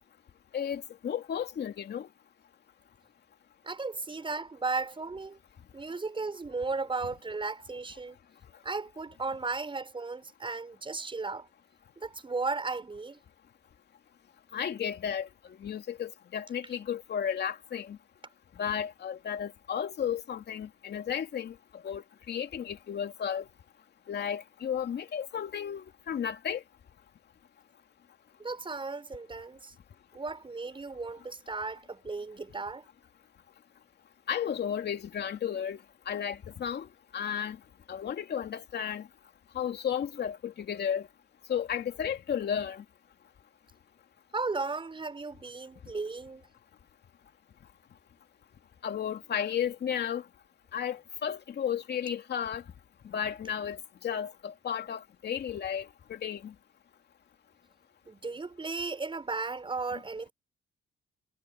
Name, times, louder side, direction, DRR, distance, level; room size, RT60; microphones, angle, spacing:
voice 1, 0.5-2.1 14.5-18.0 18.6-21.6 21.8-23.5 24.1-26.6 34.3-35.8 36.1-36.9 37.1-37.6 37.9-39.1 39.5-41.1 41.5-42.8 48.8-50.2 50.7-52.6 53.0-56.5, left 8 dB, 60° left, 2.8 m, -33 dB
voice 2, 3.6-5.4 5.7-8.2 8.6-11.5 12.0-13.2 28.4-29.7 30.1-32.8 44.3-46.4 58.1-60.3, right 3 dB, 25° right, 7.1 m, -35 dB
cardioid pair, 90°, 20 cm